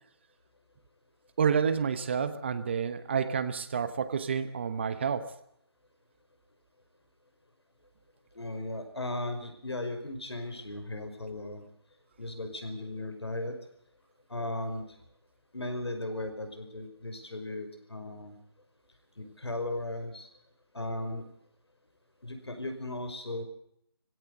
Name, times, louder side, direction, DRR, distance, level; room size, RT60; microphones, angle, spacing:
voice 1, 1.4-5.3, right 6 dB, 25° right, 12 dB, 1.0 m, -29 dB
voice 2, 8.4-11.6 12.2-13.6 14.3-14.9 15.5-18.3 19.2-20.3 20.7-21.2 22.2-23.4, left 1 dB, 90° left, 7 dB, 5.4 m, -36 dB
20.0 x 17.0 x 8.0 m, 0.71 s
figure-of-eight pair, 165°, 13 cm